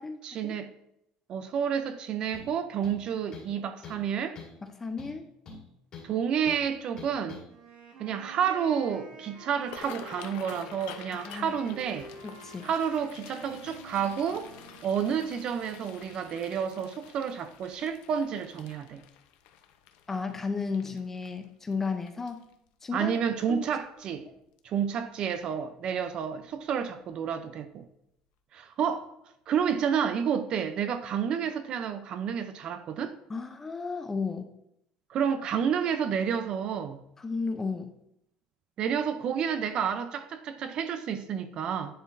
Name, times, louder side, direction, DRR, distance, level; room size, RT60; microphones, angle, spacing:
voice 1, 0.2-0.7 1.3-4.4 6.0-7.4 8.0-12.1 12.6-14.5 14.8-19.0 22.9-24.3 24.6-27.8 28.5-29.1 29.5-33.2 35.1-37.0 38.8-41.9, right 7 dB, 40° right, 0.5 m, -30 dB
sound 1, 2.3-2.5 2.8-3.6 3.8-4.1 4.4-4.6 5.0-6.1 6.5-6.6 7.0-7.5, left 4 dB, 35° left, 1.8 m, -45 dB
voice 2, 4.6-5.2 11.1-11.5 12.2-12.7 20.1-22.5 22.8-23.2 23.5-23.7 33.3-34.5 37.2-37.9, left 4 dB, 15° left, 0.5 m, -33 dB
sound 2, 7.5-14.9, right 2 dB, 60° right, 1.5 m, -49 dB
sound 3, 9.6-22.7 23.2-23.4 23.8-24.2 24.6-24.7 26.0-26.2 26.5-26.6 27.1-27.2, left 9 dB, 80° left, 0.6 m, -49 dB
9.9 x 4.4 x 2.6 m
cardioid pair, 160°, 2 cm